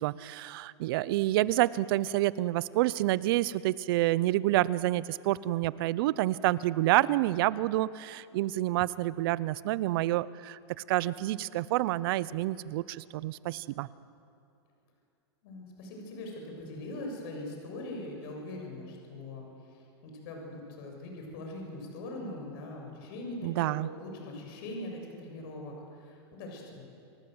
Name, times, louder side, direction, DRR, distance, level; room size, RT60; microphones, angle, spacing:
voice 1, 0.0-10.6 10.9-13.9 23.4-23.9, right 16 dB, 55° right, 19 dB, 0.7 m, -28 dB
voice 2, 15.4-26.8, left 1 dB, 55° left, 1 dB, 7.3 m, -41 dB
28.5 x 18.5 x 8.0 m, 2.5 s
supercardioid pair, 150°, 15 cm